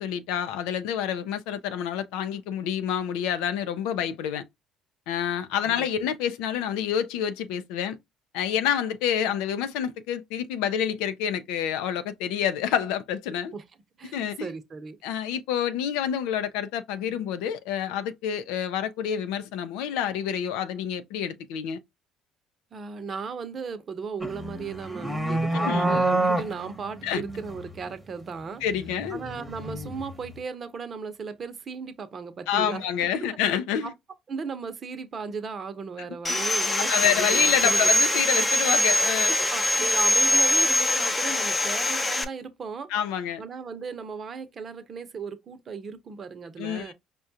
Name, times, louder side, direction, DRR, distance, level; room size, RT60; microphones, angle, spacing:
voice 1, 0.0-4.4 5.1-8.0 8.3-13.5 14.1-14.5 15.0-21.8 25.6-25.9 27.0-27.2 28.6-29.2 32.5-33.9 36.0-36.3 36.8-39.4 42.9-43.4 46.6-46.9, left 9 dB, 80° left, 0.5 m, -28 dB
voice 2, 5.6-6.1 13.5-13.6 14.0-15.0 22.7-28.6 29.1-32.9 34.3-37.9 39.5-42.9 43.4-46.9, right 5 dB, 40° right, 0.8 m, -36 dB
sound 1, 24.2-27.7 28.7-30.3, right 2 dB, 5° right, 1.1 m, -28 dB
Sawing, 36.2-42.2, left 1 dB, 20° left, 0.8 m, -23 dB
5.0 x 2.3 x 2.7 m
supercardioid pair, 80°, 0 cm